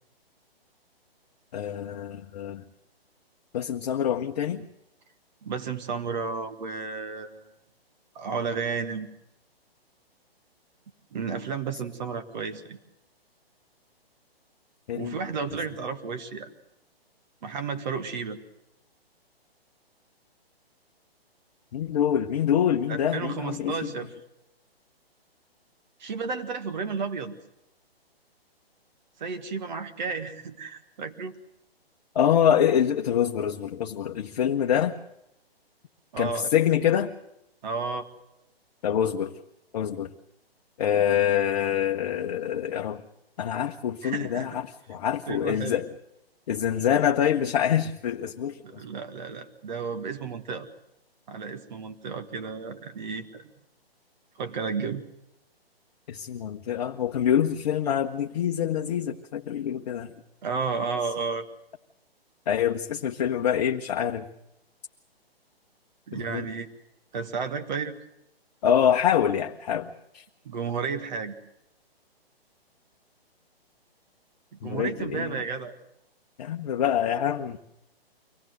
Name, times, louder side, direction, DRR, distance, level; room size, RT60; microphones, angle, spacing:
voice 1, 1.5-2.6 3.5-4.6 14.9-15.2 21.7-23.9 32.1-34.9 36.2-37.1 38.8-39.3 39.7-40.1 40.8-43.0 43.4-45.9 46.5-48.8 56.1-60.1 62.5-64.2 66.1-66.4 68.6-70.2 74.6-75.3 76.4-77.6, left 9 dB, 40° left, 3 dB, 1.1 m, -25 dB
voice 2, 5.4-7.5 8.2-9.1 11.1-12.8 14.9-16.5 17.4-18.4 22.9-24.1 26.0-27.4 29.2-31.4 36.1-36.5 37.6-38.1 44.0-44.6 44.9-45.0 45.3-45.8 48.6-50.7 51.3-53.5 54.4-55.0 60.4-61.5 66.1-66.7 67.1-67.9 70.5-71.4 74.6-75.7, right 5 dB, 45° right, 10 dB, 1.8 m, -32 dB
24.5 x 17.0 x 7.9 m, 0.85 s
figure-of-eight pair, 130°, 31 cm